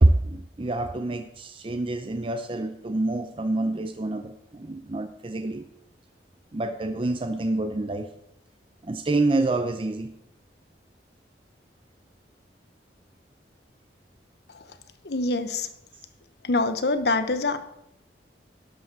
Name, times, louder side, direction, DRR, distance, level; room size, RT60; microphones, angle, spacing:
voice 1, 0.0-5.7 6.5-8.1 8.8-10.1, right 2 dB, 30° right, 7 dB, 0.5 m, -26 dB
voice 2, 15.0-15.7 16.4-17.6, left 3 dB, 65° left, 10 dB, 0.9 m, -25 dB
11.5 x 5.1 x 6.7 m, 0.78 s
head